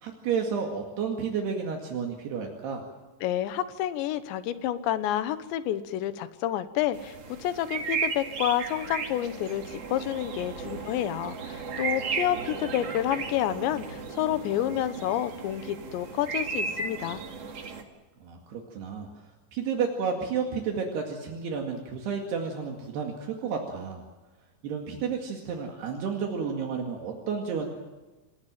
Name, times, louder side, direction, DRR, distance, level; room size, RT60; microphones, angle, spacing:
voice 1, 0.0-2.8 18.2-19.1 19.5-24.0 24.6-27.7, right 6 dB, 70° right, 2 dB, 4.1 m, -31 dB
voice 2, 3.2-17.2, left 11 dB, 85° left, 12 dB, 3.4 m, -29 dB
sound 1, 6.9-17.8, right 5 dB, 40° right, 2.6 m, -35 dB
27.0 x 19.0 x 7.6 m, 1.2 s
omnidirectional pair, 5.0 m